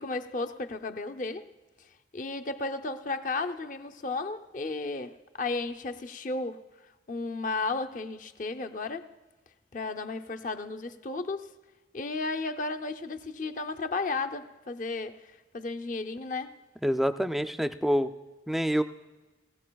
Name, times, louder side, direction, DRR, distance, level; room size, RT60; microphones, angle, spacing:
voice 1, 0.0-1.5 2.1-6.6 7.1-9.1 9.7-11.5 11.9-15.2 15.5-16.6, left 3 dB, 45° left, 0.5 m, -34 dB
voice 2, 16.8-18.1 18.5-18.8, equal, ahead, 0.3 m, -26 dB
20.5 x 16.0 x 2.3 m
head